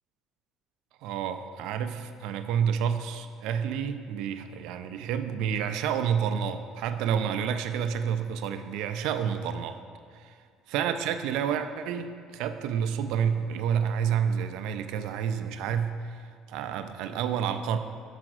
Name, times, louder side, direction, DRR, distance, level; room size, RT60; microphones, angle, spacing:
voice 1, 1.0-9.8 10.1-10.3 10.7-17.8, right 8 dB, 75° right, 8 dB, 0.4 m, -29 dB
6.0 x 4.9 x 6.1 m, 2.1 s
cardioid pair, 140°, 0 cm